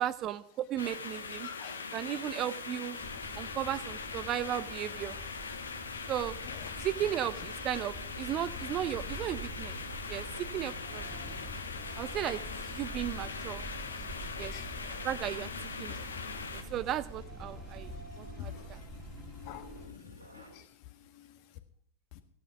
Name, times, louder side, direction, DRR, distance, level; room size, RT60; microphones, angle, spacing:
voice 1, 0.0-1.5 1.9-3.0 3.4-5.1 6.1-6.4 6.8-9.8 10.1-11.3 12.0-13.6 14.4-14.5 15.0-15.5 15.8-16.0 16.5-17.9 18.2-18.8, right 12 dB, 35° right, 16 dB, 0.6 m, -35 dB
sound 1, 0.8-16.6, left 5 dB, 75° left, 1.5 m, -41 dB
voice 2, 1.4-1.8 2.1-2.2 6.5-6.9 14.5-14.7 18.4-18.7 19.1-20.6 21.1-21.3, left 11 dB, 45° left, 8 dB, 1.6 m, -47 dB
sound 2, 3.0-19.9, equal, 5° right, 2.3 m, -46 dB
sound 3, 8.0-20.6, equal, 85° right, 2.8 m, -51 dB
16.5 x 10.5 x 5.9 m, 0.68 s
figure-of-eight pair, 90°, 0 cm